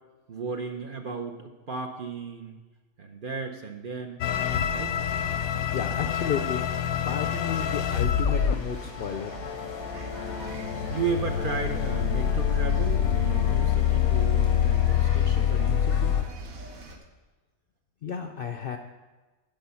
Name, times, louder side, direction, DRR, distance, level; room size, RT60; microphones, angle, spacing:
voice 1, 0.3-2.6 3.0-4.2 4.7-5.0 10.9-16.2, right 5 dB, 45° right, 4 dB, 0.8 m, -34 dB
sound 1, 4.2-16.2, left 9 dB, 90° left, 1.1 m, -26 dB
sound 2, 4.2-17.0, right 1 dB, 75° right, 1.5 m, -41 dB
voice 2, 5.7-6.6 7.0-9.4 18.0-18.8, left 7 dB, 60° left, 6 dB, 0.6 m, -32 dB
10.5 x 5.5 x 7.0 m, 1.2 s
omnidirectional pair, 1.5 m